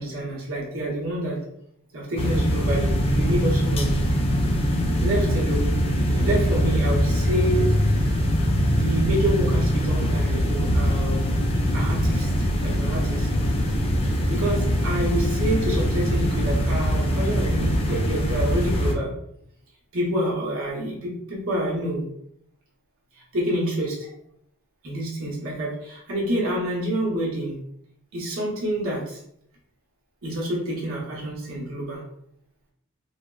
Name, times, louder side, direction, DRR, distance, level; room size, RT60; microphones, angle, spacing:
voice 1, 0.0-1.4 1.9-4.0 4.9-7.7 8.7-11.3 11.7-12.3 12.6-13.3 14.3-19.1 19.9-22.1 23.1-24.1 24.8-27.6 28.1-29.2 30.2-32.0, right 1 dB, 70° right, -4 dB, 0.8 m, -27 dB
sound 1, 2.2-18.9, equal, 30° left, 0.4 m, -22 dB
3.2 x 2.0 x 2.2 m, 0.74 s
head